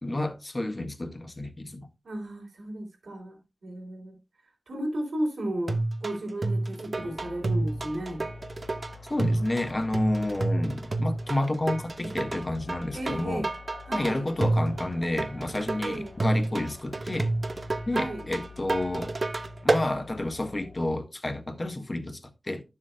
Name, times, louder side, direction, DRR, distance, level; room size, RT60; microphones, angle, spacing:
voice 1, 0.0-1.9 9.1-13.5 13.9-17.3 17.9-19.2 19.6-22.6, left 1 dB, 30° left, 1.6 m, -30 dB
voice 2, 2.0-4.2 4.7-8.3 12.0-12.2 12.9-13.5 13.9-14.3 15.8-16.2 17.9-18.3, right 1 dB, 85° right, 3.7 m, -34 dB
sound 1, 5.7-19.9, right 2 dB, 50° right, 0.9 m, -29 dB
sound 2, 7.0-21.0, left 5 dB, 55° left, 0.8 m, -48 dB
12.0 x 7.3 x 2.3 m
wide cardioid pair, 75°, 0 cm